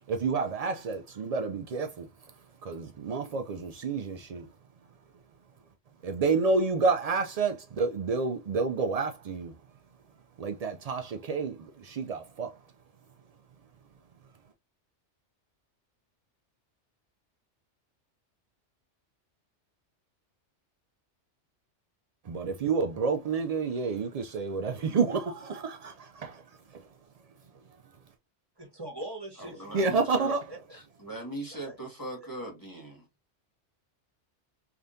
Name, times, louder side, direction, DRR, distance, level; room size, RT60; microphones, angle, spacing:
voice 1, 0.1-2.1 2.6-4.5 6.0-9.5 10.4-12.6 22.3-26.4 26.7-26.8 29.7-30.4, right 4 dB, 80° right, 0.3 m, -29 dB
voice 2, 28.6-30.0 30.3-30.8 31.5-31.7, right 1 dB, 20° right, 1.5 m, -42 dB
voice 3, 29.4-30.3 30.7-33.1, right 1 dB, 15° left, 1.4 m, -40 dB
3.6 x 3.3 x 2.5 m
omnidirectional pair, 1.2 m